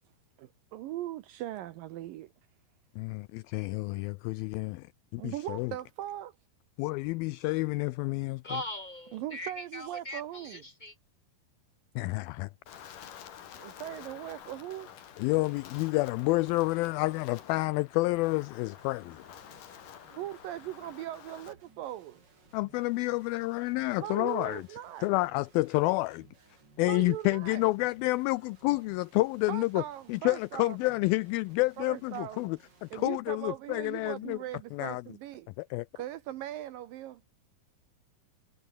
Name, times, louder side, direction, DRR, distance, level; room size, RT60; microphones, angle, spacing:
voice 1, 0.4-2.3 5.2-6.4 9.1-10.6 13.5-14.9 20.1-22.2 24.0-25.1 26.8-27.6 29.5-30.8 31.8-32.5 32.9-35.5 36.0-37.2, right 13 dB, 75° right, 2.2 m, -39 dB
voice 2, 3.0-4.9 5.1-5.7 6.8-8.4 12.0-12.5 15.2-19.2 22.5-24.6 25.0-26.3 26.8-29.8 30.1-34.4 34.7-35.0 35.6-35.9, left 21 dB, 85° left, 2.1 m, -29 dB
voice 3, 8.4-10.9, left 1 dB, 10° left, 2.7 m, -40 dB
Wind, 12.7-21.5, left 9 dB, 55° left, 3.5 m, -49 dB
sound 1, 18.8-33.1, right 4 dB, 30° right, 3.7 m, -61 dB
omnidirectional pair, 4.7 m